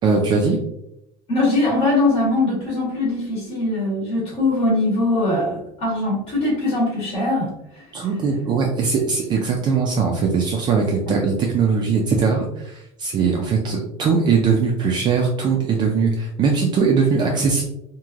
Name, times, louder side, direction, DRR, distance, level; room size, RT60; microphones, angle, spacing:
voice 1, 0.0-0.6 7.9-17.6, right 5 dB, 30° right, 0 dB, 0.3 m, -20 dB
voice 2, 1.3-7.8 11.1-11.2, left 2 dB, 40° left, -6 dB, 1.2 m, -21 dB
3.1 x 2.5 x 2.3 m, 0.81 s
cardioid pair, 155°, 15 cm